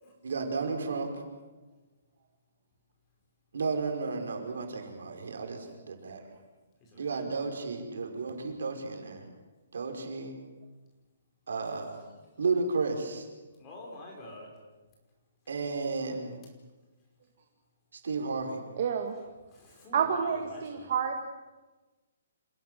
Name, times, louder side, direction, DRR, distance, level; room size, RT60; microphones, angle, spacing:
voice 1, 0.2-1.1 3.5-6.2 6.9-9.3 9.7-10.4 11.5-12.0 12.4-13.3 15.5-16.4 17.9-18.6, right 4 dB, 75° right, 3 dB, 5.2 m, -33 dB
voice 2, 6.8-7.2 13.6-14.5 19.5-20.9, left 1 dB, 15° left, -1 dB, 5.1 m, -47 dB
voice 3, 18.8-19.2 19.9-21.2, right 7 dB, 40° right, 4 dB, 2.0 m, -29 dB
28.0 x 17.0 x 7.8 m, 1.2 s
hypercardioid pair, 175°, 0 cm